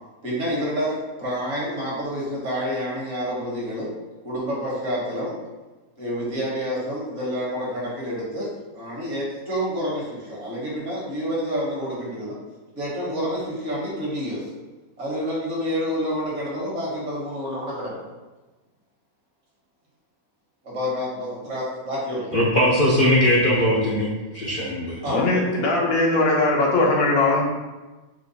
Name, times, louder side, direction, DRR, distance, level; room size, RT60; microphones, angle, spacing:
voice 1, 0.2-3.9 4.2-5.3 6.0-8.5 8.7-12.4 12.7-14.4 15.0-18.0 20.6-22.3 25.0-25.2, equal, 60° right, -5 dB, 1.7 m, -28 dB
voice 2, 22.3-25.0, left 1 dB, 50° left, -5 dB, 0.6 m, -20 dB
voice 3, 25.0-27.4, left 2 dB, 80° left, -3 dB, 1.3 m, -20 dB
4.3 x 2.4 x 4.0 m, 1.2 s
omnidirectional pair, 1.4 m